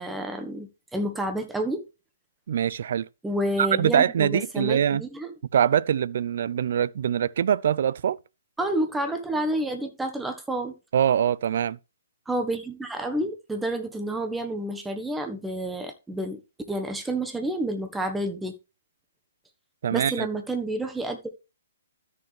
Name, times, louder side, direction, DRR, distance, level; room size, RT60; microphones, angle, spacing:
voice 1, 0.0-1.8 3.2-5.3 8.6-10.7 12.3-16.4 16.7-18.5 19.9-21.3, right 1 dB, 5° right, 1.5 m, -29 dB
voice 2, 2.5-3.1 3.6-5.0 5.5-8.2 10.9-11.8 19.8-20.3, right 9 dB, 55° right, 0.5 m, -23 dB
13.0 x 6.8 x 3.4 m
figure-of-eight pair, 130°, 0 cm